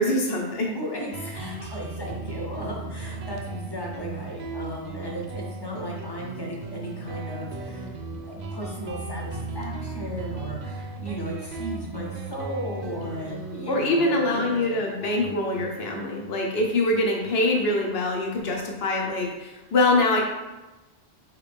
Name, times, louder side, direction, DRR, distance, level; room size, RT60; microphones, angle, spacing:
voice 1, 0.0-0.7 13.7-20.2, left 2 dB, 60° left, 1 dB, 1.0 m, -24 dB
voice 2, 0.6-7.9 8.2-14.4, equal, 25° left, -2 dB, 0.8 m, -35 dB
Guitar, 1.1-18.3, right 3 dB, 55° right, 0.5 m, -37 dB
4.7 x 3.2 x 3.4 m, 1.1 s
omnidirectional pair, 1.2 m